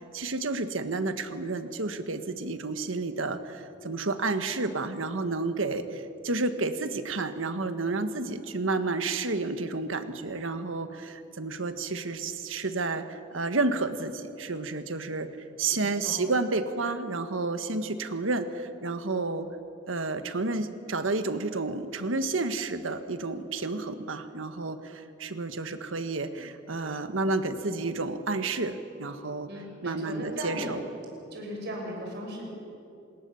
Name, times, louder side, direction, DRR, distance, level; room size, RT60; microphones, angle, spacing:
voice 1, 0.1-15.3 15.6-19.5 19.9-29.5 29.8-30.8, right 3 dB, 90° right, 9 dB, 1.4 m, -31 dB
voice 2, 15.8-16.2 29.5-30.8 31.3-32.5, equal, 60° right, 0 dB, 6.4 m, -37 dB
27.5 x 20.0 x 7.1 m, 2.7 s
head